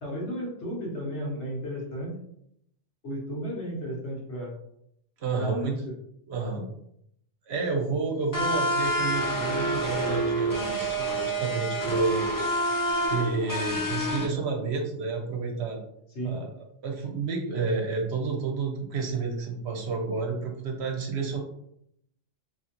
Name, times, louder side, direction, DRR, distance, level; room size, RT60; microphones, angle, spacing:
voice 1, 0.0-2.2 3.0-4.6 5.4-5.9 16.1-16.4, right 1 dB, 65° left, -3 dB, 1.5 m, -33 dB
voice 2, 5.2-5.7 6.3-6.7 7.5-12.3 13.1-15.8 16.2-16.5 16.8-21.4, right 4 dB, 65° right, 1 dB, 0.9 m, -30 dB
sound 1, 8.3-14.3, right 1 dB, 30° left, 0.4 m, -27 dB
3.8 x 3.0 x 2.9 m, 0.74 s
omnidirectional pair, 1.3 m